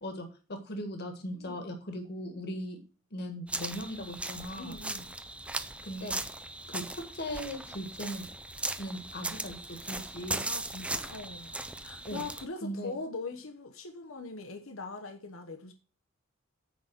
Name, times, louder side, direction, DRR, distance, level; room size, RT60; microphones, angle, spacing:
voice 1, 0.0-2.8 3.1-4.8 5.8-6.2 6.7-8.3 8.8-10.4 12.0-12.2 12.6-13.0, equal, 50° left, 1.8 m, -39 dB
sound 1, 3.5-12.5, right 2 dB, 5° right, 0.5 m, -38 dB
voice 2, 4.5-5.2 10.4-15.7, left 3 dB, 75° left, 1.0 m, -42 dB
9.5 x 4.1 x 6.4 m
head